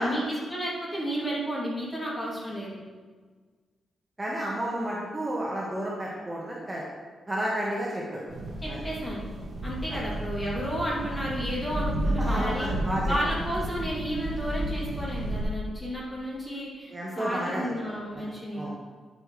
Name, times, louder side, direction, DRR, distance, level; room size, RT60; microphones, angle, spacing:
voice 1, 0.0-2.8 8.6-9.3 9.6-12.7 13.0-18.7, equal, 15° left, -6 dB, 2.7 m, -32 dB
voice 2, 4.2-6.8 7.3-8.2 8.7-8.8 9.9-10.0 12.2-13.1 16.9-17.6 18.1-18.7, right 1 dB, 15° right, -5 dB, 1.3 m, -31 dB
sound 1, 8.3-15.4, equal, 45° right, 1.6 m, -32 dB
10.0 x 8.9 x 3.2 m, 1.5 s
wide cardioid pair, 155°, 0 cm